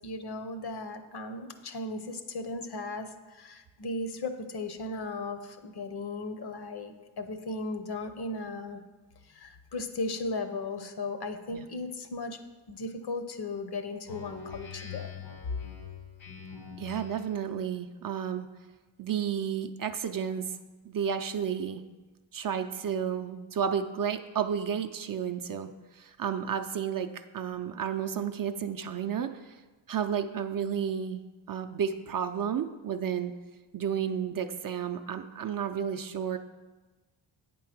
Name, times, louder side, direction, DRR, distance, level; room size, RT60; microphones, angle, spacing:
voice 1, 0.0-8.8 9.3-12.4 12.7-15.1, left 2 dB, 50° left, 8 dB, 0.8 m, -36 dB
Speech synthesizer, 14.0-17.4, left 7 dB, 70° left, 1.4 m, -44 dB
voice 2, 16.8-18.5 19.0-20.6 20.9-21.8 22.3-29.6 29.9-31.2 31.5-33.3 33.7-36.4, right 8 dB, 45° right, 7 dB, 0.5 m, -32 dB
8.4 x 3.8 x 5.9 m, 1.2 s
cardioid pair, 70°, 48 cm